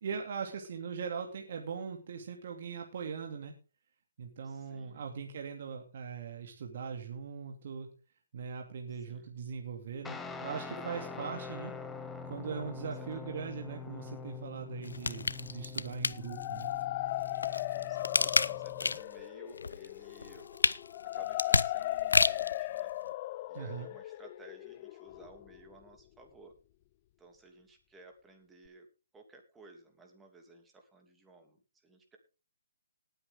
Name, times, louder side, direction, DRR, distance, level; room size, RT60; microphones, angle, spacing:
voice 1, 0.0-3.5 4.2-7.9 8.3-11.7 12.3-16.7 23.5-23.9, right 6 dB, 50° right, 3 dB, 2.5 m, -40 dB
voice 2, 4.4-5.1 8.9-9.3 12.8-13.2 17.3-20.5 21.0-22.9 23.5-26.5 27.2-28.9 29.1-32.2, right 2 dB, 10° right, 4 dB, 2.6 m, -57 dB
Guitar, 10.0-19.0, left 4 dB, 5° left, 1.2 m, -44 dB
sound 1, 14.8-16.6 17.2-19.2 19.6-22.6 23.1-23.2, left 4 dB, 90° left, 0.7 m, -30 dB
sound 2, 16.1-25.9, left 16 dB, 30° left, 0.5 m, -37 dB
19.0 x 8.5 x 3.6 m, 0.33 s
hypercardioid pair, 155°, 0 cm